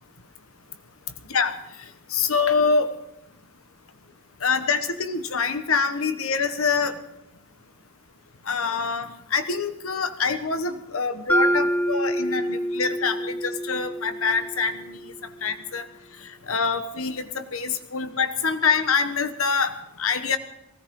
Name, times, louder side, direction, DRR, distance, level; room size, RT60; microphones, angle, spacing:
voice 1, 2.1-2.9 4.4-7.0 8.5-15.1 15.4-15.9 16.5-20.4, left 5 dB, 85° left, 10 dB, 1.3 m, -25 dB
Mallet percussion, 11.3-15.3, equal, 10° left, 1.0 m, -26 dB
19.5 x 17.0 x 3.8 m, 0.86 s
head